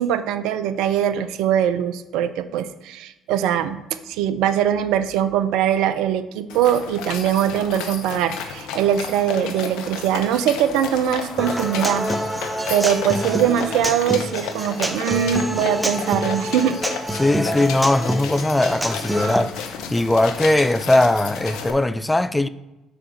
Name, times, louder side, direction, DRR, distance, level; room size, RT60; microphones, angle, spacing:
voice 1, 0.0-3.8 4.1-12.1 12.7-16.8, right 10 dB, 70° right, 0.4 m, -22 dB
sound 1, 6.5-21.7, left 6 dB, 70° left, 0.7 m, -33 dB
Human voice / Acoustic guitar, 11.4-19.4, equal, 5° right, 0.9 m, -27 dB
voice 2, 17.1-22.5, left 2 dB, 15° left, 0.4 m, -20 dB
5.0 x 4.9 x 6.0 m
hypercardioid pair, 50°, 0 cm